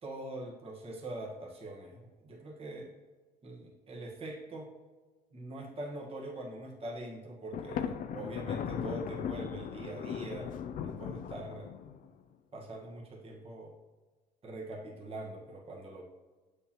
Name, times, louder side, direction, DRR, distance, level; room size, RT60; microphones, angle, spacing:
voice 1, 0.0-2.9 3.4-4.7 5.3-11.7 12.5-13.7 14.4-16.0, right 1 dB, 35° right, -2 dB, 1.4 m, -43 dB
Thunder, 7.5-12.1, left 8 dB, 55° left, 0.5 m, -38 dB
7.1 x 6.6 x 3.0 m, 1.4 s
cardioid pair, 110°, 17 cm